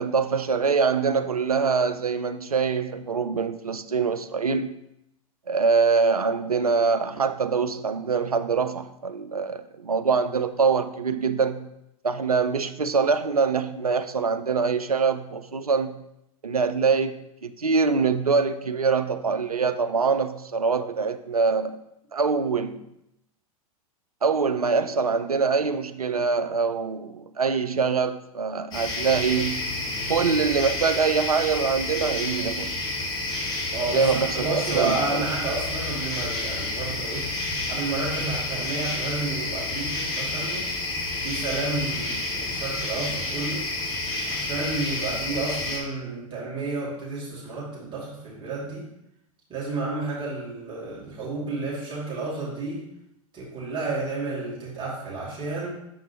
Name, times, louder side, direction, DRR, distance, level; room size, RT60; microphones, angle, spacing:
voice 1, 0.0-4.7 5.5-11.7 12.0-16.0 16.4-21.8 22.1-22.9 24.2-29.7 30.1-32.7 33.9-35.3, right 5 dB, 90° right, 0.4 m, -24 dB
sound 1, 28.7-45.8, left 2 dB, 20° left, 2.0 m, -30 dB
voice 2, 33.7-37.3 37.7-40.7 41.2-43.7 44.3-48.9 49.5-52.9 53.3-55.7, right 3 dB, 25° right, 2.4 m, -31 dB
6.9 x 5.9 x 3.0 m
figure-of-eight pair, 95°, 18 cm